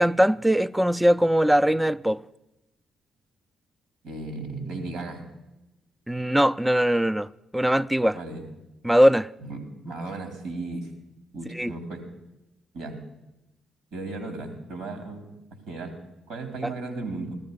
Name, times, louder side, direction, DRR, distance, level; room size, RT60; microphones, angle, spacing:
voice 1, 0.0-2.2 6.1-7.3 7.5-8.2 8.8-9.3 11.5-11.7 16.6-16.7, equal, 10° right, 0.4 m, -21 dB
voice 2, 4.0-5.2 8.1-8.4 9.4-9.6 9.8-10.9 11.3-12.0 12.7-13.0 13.9-15.3 15.7-16.0 16.3-17.3, right 3 dB, 75° right, 2.9 m, -35 dB
15.0 x 13.0 x 5.3 m
hypercardioid pair, 45°, 0 cm